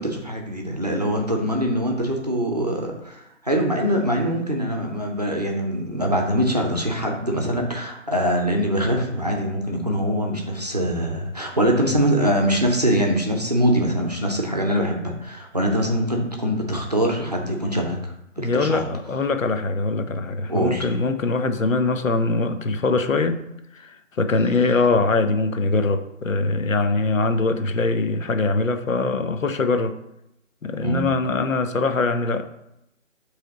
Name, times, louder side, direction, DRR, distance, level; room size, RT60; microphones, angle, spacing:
voice 1, 0.0-18.0 18.4-18.8 20.5-20.8 30.8-31.1, equal, 30° right, 1 dB, 0.7 m, -23 dB
voice 2, 18.4-23.4 23.7-30.0 30.6-32.4, left 3 dB, 75° left, 8 dB, 0.9 m, -22 dB
7.6 x 3.4 x 3.9 m, 0.83 s
figure-of-eight pair, 175°, 40 cm